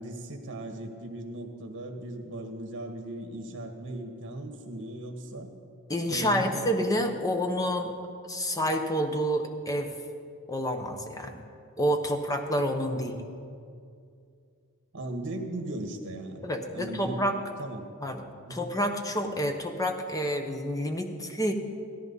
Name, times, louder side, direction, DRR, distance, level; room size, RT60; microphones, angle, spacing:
voice 1, 0.0-5.5 6.0-6.7 13.0-13.2 14.9-17.3 17.6-17.9 18.4-18.7, right 1 dB, 60° right, 4 dB, 1.6 m, -38 dB
voice 2, 5.9-7.9 8.3-9.9 10.5-11.4 11.8-13.2 16.4-17.4 18.0-18.2 18.5-21.5, equal, 15° left, 5 dB, 1.0 m, -28 dB
17.0 x 13.5 x 4.1 m, 2.4 s
head